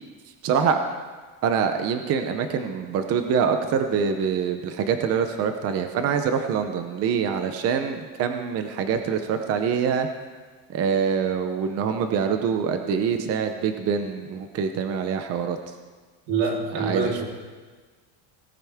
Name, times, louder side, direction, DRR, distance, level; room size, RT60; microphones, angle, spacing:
voice 1, 0.4-0.8 1.4-10.1 10.7-15.6 16.8-17.1, right 7 dB, 30° right, 7 dB, 0.7 m, -25 dB
voice 2, 16.3-17.2, right 4 dB, 85° right, -2 dB, 3.7 m, -25 dB
18.5 x 13.5 x 3.6 m, 1.4 s
cardioid pair, 180°, 48 cm